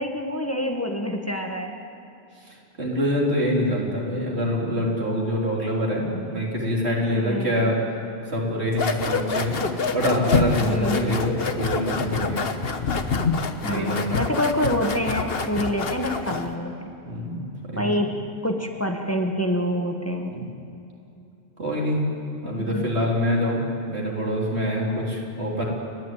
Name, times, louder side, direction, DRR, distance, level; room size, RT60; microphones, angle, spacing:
voice 1, 0.0-1.7 7.1-7.6 10.7-11.2 13.6-16.9 17.8-18.1 18.4-20.4 22.6-22.9, equal, 15° left, 3 dB, 1.5 m, -26 dB
voice 2, 2.8-7.8 8.3-9.6 9.9-12.5 13.6-14.2 17.0-17.9 20.3-20.5 21.6-22.0 22.4-25.7, equal, 90° right, -3 dB, 4.1 m, -25 dB
sound 1, 8.7-16.5, left 4 dB, 65° left, 1.3 m, -26 dB
30.0 x 11.0 x 9.3 m, 2.8 s
omnidirectional pair, 1.1 m